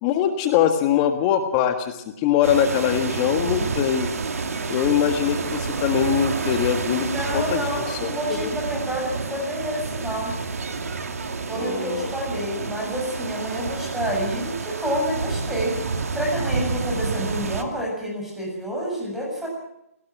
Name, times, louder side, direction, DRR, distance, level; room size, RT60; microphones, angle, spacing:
voice 1, 0.0-4.1 4.7-7.1 7.3-8.5 11.6-12.1, left 9 dB, 25° left, 7 dB, 1.6 m, -22 dB
sound 1, 2.4-17.6, right 4 dB, 70° right, 2.6 m, -29 dB
voice 2, 7.0-10.4 11.5-19.5, equal, 5° right, -1 dB, 7.2 m, -28 dB
23.5 x 18.5 x 6.0 m, 0.82 s
hypercardioid pair, 155°, 8 cm